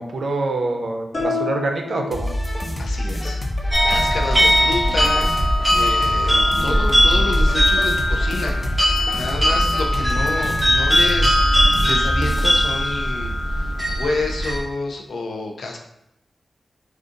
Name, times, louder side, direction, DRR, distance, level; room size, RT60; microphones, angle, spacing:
voice 1, 0.0-2.3, right 2 dB, 80° right, 3 dB, 0.4 m, -25 dB
sound 1, 1.1-2.9, left 3 dB, 60° left, 1.1 m, -29 dB
sound 2, 2.1-12.7, left 1 dB, 20° left, 0.6 m, -26 dB
voice 2, 2.8-5.3 5.7-8.6 9.1-11.4 11.8-15.8, left 3 dB, 85° left, 2 dB, 0.5 m, -29 dB
sound 3, 3.7-14.6, equal, 15° right, 0.8 m, -19 dB
2.5 x 2.3 x 3.7 m, 0.84 s
cardioid pair, 60°, 0 cm